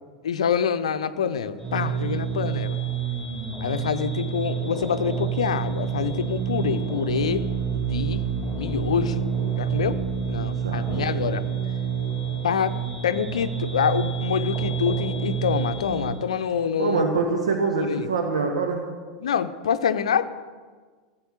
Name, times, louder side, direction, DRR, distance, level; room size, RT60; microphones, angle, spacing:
voice 1, 0.2-2.8 3.6-7.4 7.7-8.2 8.6-9.3 9.6-10.0 10.2-11.4 12.4-12.8 13.0-17.0 17.9-18.1 19.2-20.3, left 7 dB, 65° left, 11 dB, 0.6 m, -26 dB
sound 1, 1.6-16.1, right 7 dB, 10° right, 4.7 m, -28 dB
voice 2, 10.6-11.2 16.8-18.8, right 4 dB, 70° right, 3 dB, 1.2 m, -25 dB
16.0 x 7.5 x 6.6 m, 1.5 s
figure-of-eight pair, 85°, 4 cm